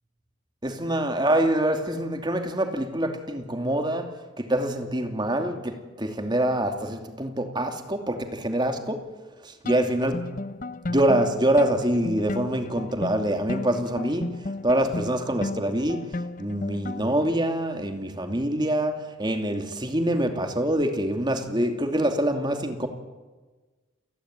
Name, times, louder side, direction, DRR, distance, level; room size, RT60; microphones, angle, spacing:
voice 1, 0.6-9.1 9.4-10.3 10.9-22.9, right 1 dB, 25° right, 2.7 m, -25 dB
sound 1, 9.7-17.3, left 2 dB, 45° left, 0.9 m, -34 dB
29.5 x 16.0 x 10.0 m
head